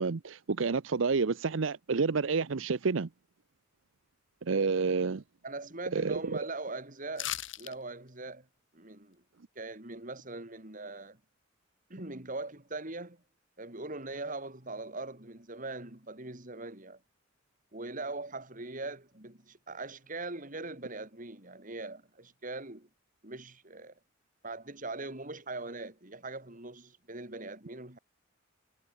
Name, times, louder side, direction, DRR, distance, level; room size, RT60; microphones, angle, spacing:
voice 1, 0.0-3.1 4.5-5.2 5.9-6.2, right 4 dB, 85° right, 0.7 m, -29 dB
voice 2, 5.4-8.5 8.7-9.2 9.6-11.2 11.9-13.2 13.6-17.0 17.7-22.9 23.2-23.9 24.4-28.0, right 2 dB, 45° right, 3.9 m, -41 dB
sound 1, 7.2-7.7 8.1-8.2, left 12 dB, 70° left, 2.1 m, -36 dB
head